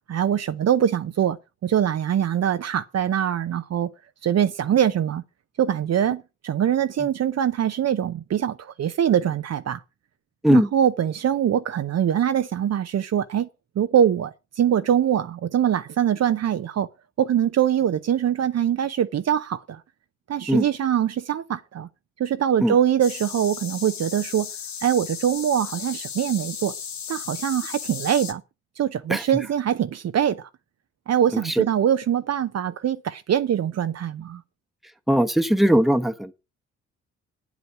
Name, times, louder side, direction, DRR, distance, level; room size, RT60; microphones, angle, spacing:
voice 1, 0.1-1.4 1.6-3.9 4.2-5.2 5.6-9.8 10.5-13.5 13.8-16.9 17.2-19.8 20.3-21.9 22.2-24.5 24.8-26.7 27.1-28.4 28.8-30.5 31.1-34.4, right 9 dB, 50° right, 0.8 m, -23 dB
sound 1, 23.0-28.3, left 7 dB, 55° left, 1.6 m, -35 dB
voice 2, 31.3-31.6 35.1-36.3, equal, ahead, 1.2 m, -19 dB
9.1 x 8.2 x 5.9 m
hypercardioid pair, 40°, 34 cm